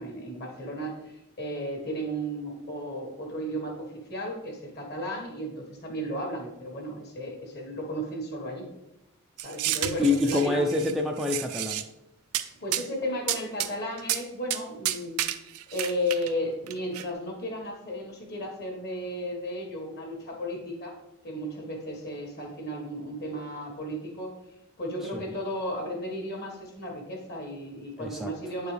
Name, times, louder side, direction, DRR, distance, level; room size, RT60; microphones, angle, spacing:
voice 1, 0.0-8.7 9.4-10.6 12.4-15.2 15.7-21.0 21.2-24.4 24.8-28.7, equal, 45° left, 1 dB, 1.6 m, -34 dB
sound 1, 9.4-10.9 11.2-11.8 12.3-12.4 12.7-12.9 13.3-13.7 14.0-14.2 14.5-14.6 14.8-16.3 16.7-17.0, right 12 dB, 80° right, 0.4 m, -30 dB
voice 2, 10.0-11.8 28.0-28.3, left 3 dB, ahead, 1 dB, 0.3 m, -26 dB
8.8 x 4.6 x 3.3 m, 0.94 s
head